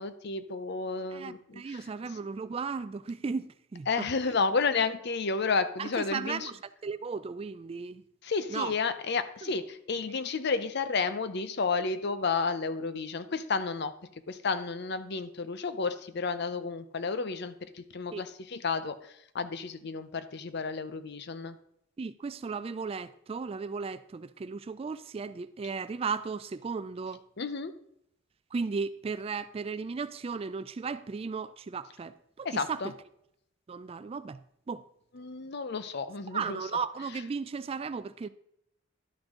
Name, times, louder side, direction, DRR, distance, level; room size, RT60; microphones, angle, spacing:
voice 1, 0.0-1.8 3.9-6.5 8.2-13.9 14.3-21.6 27.4-27.7 32.4-32.9 35.1-36.6, left 4 dB, 55° left, 0.6 m, -31 dB
voice 2, 1.1-4.1 5.8-8.0 8.5-8.7 9.4-9.5 18.1-18.3 22.0-27.2 28.5-32.8 33.7-34.4 34.7-34.8 36.3-38.3, right 5 dB, 30° right, 0.3 m, -35 dB
11.5 x 6.2 x 3.7 m
head